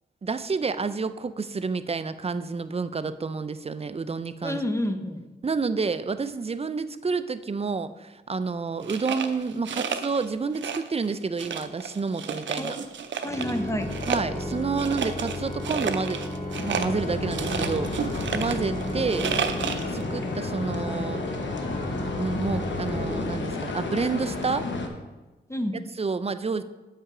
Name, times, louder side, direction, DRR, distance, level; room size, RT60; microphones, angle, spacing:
voice 1, 0.2-4.6 5.4-12.8 14.1-16.2 16.6-18.1 18.3-19.3 19.9-21.2 22.2-24.7 26.0-26.6, right 4 dB, 35° right, 12 dB, 0.4 m, -29 dB
voice 2, 4.4-5.2 12.6-12.9 13.2-13.9 25.5-25.8, left 1 dB, 15° left, 6 dB, 0.8 m, -29 dB
sound 1, 8.8-10.3 10.5-11.1 11.4-13.6 13.9-20.0, right 7 dB, 90° right, 0.5 m, -32 dB
Organ, 13.2-24.0, left 1 dB, 40° left, 1.9 m, -33 dB
sound 2, 16.5-24.9, left 3 dB, 80° left, 1.0 m, -33 dB
8.4 x 5.6 x 4.9 m, 1.1 s
cardioid pair, 70°, 19 cm